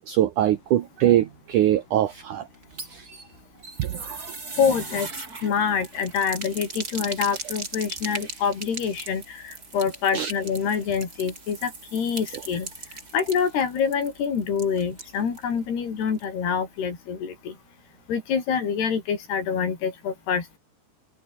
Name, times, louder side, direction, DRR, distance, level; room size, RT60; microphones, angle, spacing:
voice 1, 0.0-2.5 2.9-3.1 3.8-4.3 10.1-10.3, right 12 dB, 65° right, 2.3 m, -23 dB
sound 1, 2.5-15.5 15.8-15.9 16.2-16.3, right 3 dB, 25° right, 4.2 m, -39 dB
voice 2, 4.6-12.7 13.1-17.5 18.1-20.6, left 6 dB, 80° left, 6.4 m, -26 dB
omnidirectional pair, 4.6 m